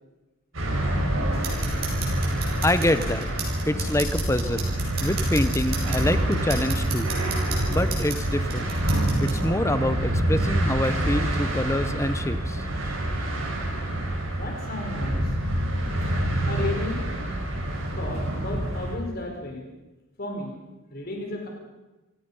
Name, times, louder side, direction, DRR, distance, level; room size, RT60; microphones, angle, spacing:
sound 1, 0.5-19.0, right 1 dB, 80° right, 5.8 m, -26 dB
sound 2, 1.3-9.4, right 3 dB, 50° right, 6.6 m, -35 dB
voice 1, 2.6-3.3 3.7-4.7 5.0-7.1 7.7-8.7 9.2-12.6, left 1 dB, 15° left, 12 dB, 0.9 m, -26 dB
voice 2, 14.4-15.4 16.3-17.1 17.9-19.7 20.2-20.5 20.9-21.5, left 2 dB, 45° left, 2 dB, 4.4 m, -34 dB
27.5 x 18.0 x 5.6 m, 1.1 s
head